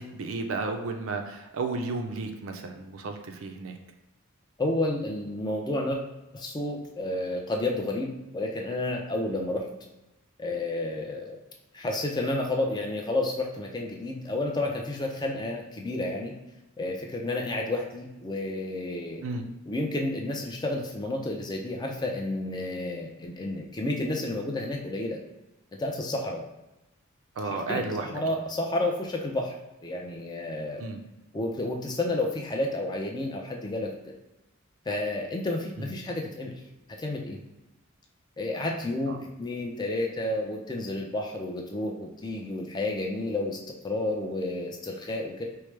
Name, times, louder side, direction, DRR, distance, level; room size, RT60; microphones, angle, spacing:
voice 1, 0.0-3.8 19.2-19.5 27.4-28.2 30.8-31.0 35.8-35.9 39.1-39.2, right 3 dB, 70° right, 5 dB, 0.4 m, -33 dB
voice 2, 4.6-6.0 6.3-9.7 10.4-11.4 11.7-16.3 16.8-19.2 19.7-25.2 25.8-26.4 27.4-29.5 29.8-30.8 31.3-33.9 34.9-36.5 37.0-37.4 38.4-45.4, left 2 dB, 20° left, 1 dB, 0.4 m, -31 dB
4.5 x 2.0 x 3.2 m, 0.98 s
head